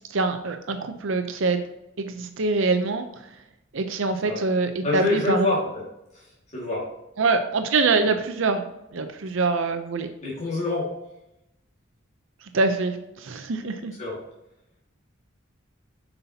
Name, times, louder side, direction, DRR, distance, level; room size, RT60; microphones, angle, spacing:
voice 1, 0.1-1.6 2.0-3.1 3.7-5.5 7.2-8.6 8.9-10.1 12.5-13.9, right 3 dB, 75° right, 7 dB, 0.6 m, -24 dB
voice 2, 4.8-5.6 6.5-6.8 10.2-10.9 14.0-14.2, left 3 dB, 35° left, -6 dB, 1.9 m, -25 dB
8.1 x 5.5 x 2.8 m, 0.87 s
head